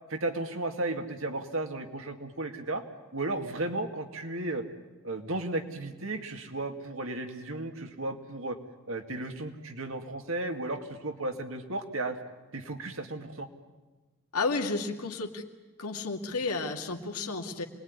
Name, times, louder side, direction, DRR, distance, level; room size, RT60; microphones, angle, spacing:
voice 1, 0.1-2.8 3.1-4.6 5.0-8.6 8.9-12.2 12.5-13.5, right 2 dB, 65° right, 5 dB, 2.3 m, -34 dB
voice 2, 14.3-15.4 15.8-17.6, left 3 dB, 85° left, 3 dB, 2.2 m, -32 dB
27.0 x 21.0 x 9.8 m, 1.3 s
head